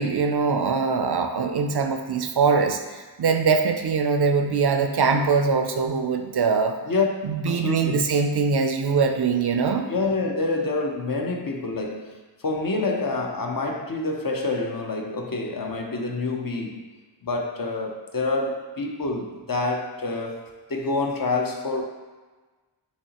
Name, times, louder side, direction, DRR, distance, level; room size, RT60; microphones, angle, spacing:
voice 1, 0.0-6.7 7.3-9.9, right 5 dB, 60° right, 6 dB, 0.5 m, -22 dB
voice 2, 7.4-8.0 9.9-16.9 17.2-20.4 20.7-21.8, left 3 dB, 50° left, 2 dB, 0.7 m, -27 dB
6.5 x 2.9 x 2.9 m, 1.3 s
wide cardioid pair, 55°, 46 cm